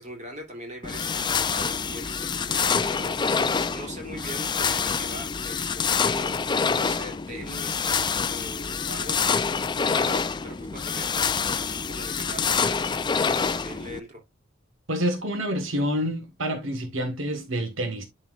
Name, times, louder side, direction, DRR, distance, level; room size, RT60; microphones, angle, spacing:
voice 1, 0.0-3.2 3.7-6.4 6.7-9.4 10.0-11.1 11.5-14.2, right 1 dB, 35° right, 2.9 m, -41 dB
sound 1, 0.8-14.0, left 5 dB, 20° left, 0.4 m, -26 dB
voice 2, 14.9-18.1, equal, 75° right, 1.5 m, -28 dB
11.0 x 4.4 x 2.4 m
head